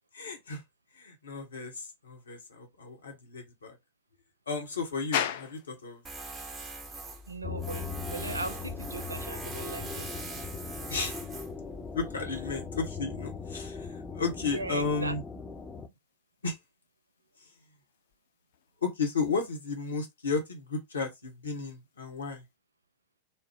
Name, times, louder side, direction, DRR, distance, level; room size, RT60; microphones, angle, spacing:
voice 1, 0.1-0.6 0.9-3.8 4.5-6.0 10.9-11.2 11.9-15.2 16.4-16.6 18.8-22.4, left 4 dB, 70° left, 1.0 m, -33 dB
sound 1, 5.1-22.6, left 10 dB, 55° left, 0.4 m, -44 dB
Tools, 6.0-12.6, right 3 dB, 20° right, 0.9 m, -43 dB
voice 2, 7.3-10.3 10.9-11.1 14.4-15.1, right 3 dB, 80° right, 0.4 m, -39 dB
sound 2, 7.4-15.9, left 5 dB, 15° left, 0.6 m, -39 dB
4.3 x 2.0 x 3.4 m
figure-of-eight pair, 90°, 0 cm